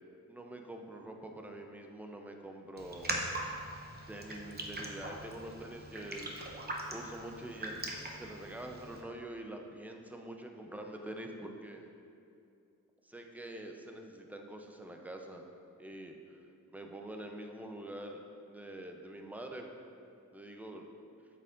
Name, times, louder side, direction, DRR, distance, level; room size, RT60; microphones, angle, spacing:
voice 1, 0.3-3.1 4.1-6.4 6.9-11.9 13.0-15.4 15.8-16.4 16.7-19.7 20.3-20.9, right 1 dB, 5° right, 3 dB, 0.5 m, -45 dB
Raindrop, 2.8-9.0, right 2 dB, 35° right, 0.8 m, -41 dB
8.7 x 6.8 x 2.5 m, 2.5 s
wide cardioid pair, 125°, 30 cm